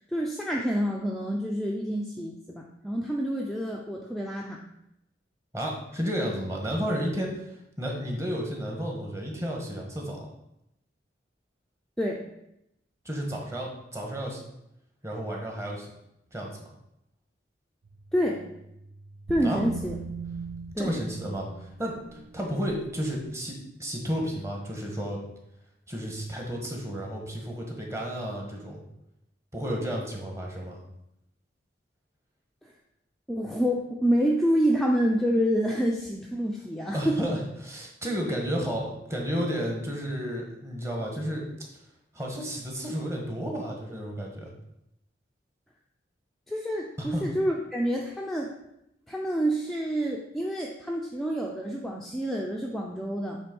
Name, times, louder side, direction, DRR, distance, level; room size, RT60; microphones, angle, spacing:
voice 1, 0.1-4.6 12.0-12.2 18.1-18.4 19.3-20.0 20.8-20.9 33.3-37.2 46.5-48.5 49.1-53.4, equal, ahead, -2 dB, 0.5 m, -27 dB
voice 2, 5.5-10.3 13.0-14.4 15.0-15.9 16.3-16.7 19.4-19.6 20.8-25.2 25.9-28.8 29.5-30.8 36.9-41.4 42.1-44.5 47.0-47.2, equal, 15° right, -1 dB, 1.4 m, -32 dB
sound 1, 17.8-23.3, right 4 dB, 85° right, 0.7 m, -40 dB
7.4 x 3.4 x 5.3 m, 0.83 s
head